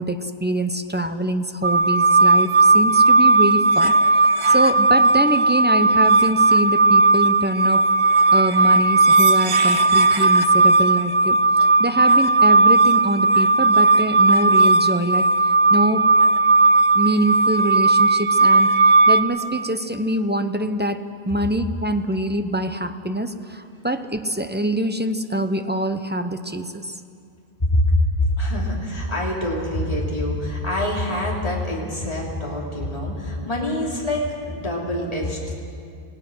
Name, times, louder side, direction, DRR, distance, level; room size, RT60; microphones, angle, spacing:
voice 1, 0.0-3.9 4.5-7.8 8.3-11.4 11.8-15.3 15.7-16.0 16.9-18.7 19.1-27.0, right 1 dB, 10° right, 8 dB, 0.7 m, -24 dB
sound 1, 1.6-19.2, right 3 dB, 75° right, 1.2 m, -16 dB
voice 2, 27.6-35.5, left 1 dB, 35° left, -3 dB, 3.4 m, -24 dB
28.5 x 17.0 x 6.3 m, 2.4 s
omnidirectional pair, 1.1 m